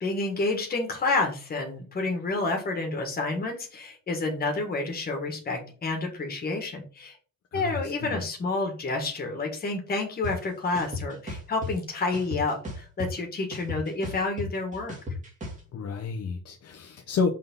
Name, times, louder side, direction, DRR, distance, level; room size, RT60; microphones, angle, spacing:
voice 1, 0.0-7.1 7.5-14.9, left 3 dB, 25° left, 1.7 m, -29 dB
voice 2, 7.5-8.2 15.7-17.3, left 5 dB, 45° left, 0.9 m, -30 dB
sound 1, 10.2-10.3 10.7-11.7 12.1-13.2 13.5-15.6, left 2 dB, 20° right, 2.0 m, -35 dB
5.9 x 3.8 x 5.5 m
cardioid pair, 170°, 35 cm